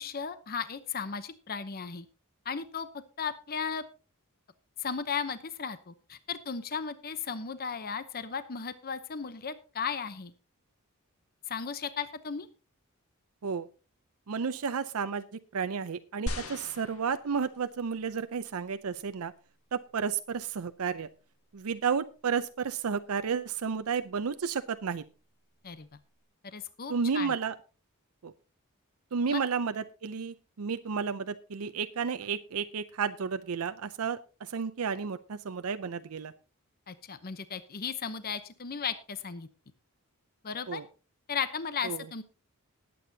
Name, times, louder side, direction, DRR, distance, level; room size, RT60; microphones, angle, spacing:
voice 1, 0.0-2.1 2.5-2.9 3.2-3.8 4.8-10.3 11.5-12.5 25.6-25.9 26.4-27.4 29.3-29.4 36.9-39.5 40.4-40.8 41.3-42.2, left 6 dB, 45° left, 12 dB, 0.8 m, -35 dB
voice 2, 14.3-15.3 15.5-19.3 19.7-21.1 21.5-25.0 26.9-27.5 28.2-28.3 29.1-36.3 40.7-40.9 41.8-42.1, right 6 dB, 75° right, 11 dB, 0.6 m, -32 dB
sound 1, 16.3-17.8 18.5-18.6, left 1 dB, 70° left, 1.7 m, -38 dB
19.5 x 8.6 x 2.8 m, 0.34 s
head